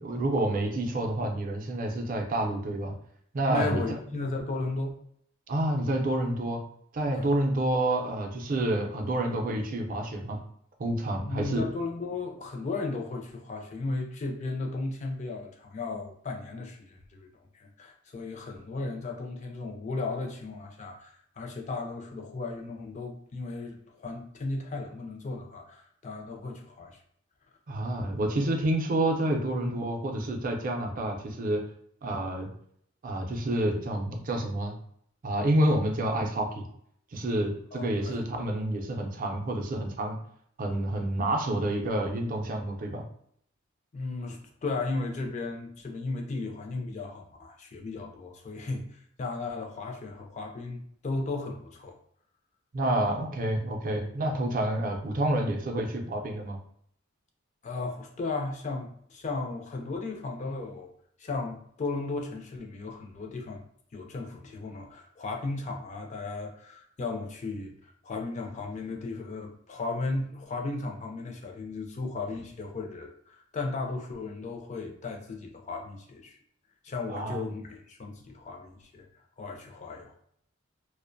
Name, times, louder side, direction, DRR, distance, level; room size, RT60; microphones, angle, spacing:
voice 1, 0.0-2.9 3.3-3.8 5.5-6.6 6.9-10.4 10.8-11.6 27.7-31.6 32.0-32.5 33.0-34.8 35.2-36.6 37.1-40.2 40.6-43.0 52.7-56.6 77.1-77.4, right 1 dB, 45° right, 3 dB, 0.4 m, -28 dB
voice 2, 3.5-5.0 7.2-7.3 11.3-17.3 17.5-27.0 37.7-38.2 43.9-52.0 57.6-60.9 61.2-63.6 63.9-76.4 76.8-79.1 79.4-80.1, left 3 dB, 35° left, 2 dB, 0.4 m, -35 dB
2.4 x 2.1 x 2.5 m, 0.67 s
head